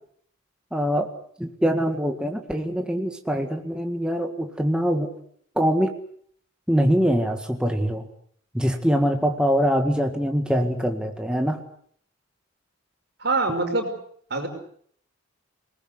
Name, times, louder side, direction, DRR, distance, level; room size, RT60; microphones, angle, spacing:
voice 1, 0.7-1.1 1.4-5.1 5.6-5.9 6.7-8.1 8.5-11.6, equal, 5° right, 4 dB, 1.8 m, -23 dB
voice 2, 13.2-13.9 14.3-14.5, right 3 dB, 55° right, 5 dB, 5.6 m, -24 dB
27.5 x 19.5 x 8.1 m, 0.63 s
head